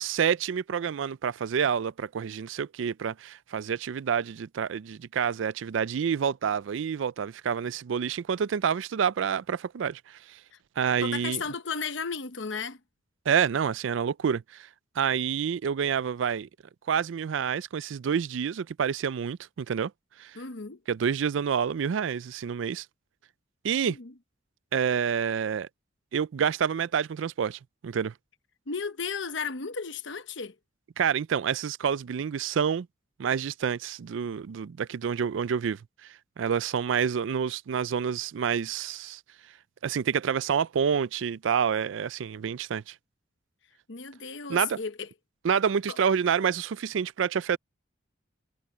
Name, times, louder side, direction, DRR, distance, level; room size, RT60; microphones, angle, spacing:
voice 1, 0.0-10.4 10.8-11.4 13.3-14.7 15.0-16.5 16.9-19.9 20.2-20.3 20.9-22.9 23.6-24.0 24.7-25.7 26.1-28.1 31.0-32.9 33.2-36.1 36.4-39.2 39.8-42.9 44.5-44.8 45.4-47.6, right 7 dB, 75° right, 0.4 m, -28 dB
voice 2, 11.0-12.8 20.3-20.8 23.8-24.1 28.7-30.5 43.9-45.1 45.9-46.0, left 5 dB, 70° left, 1.0 m, -34 dB
head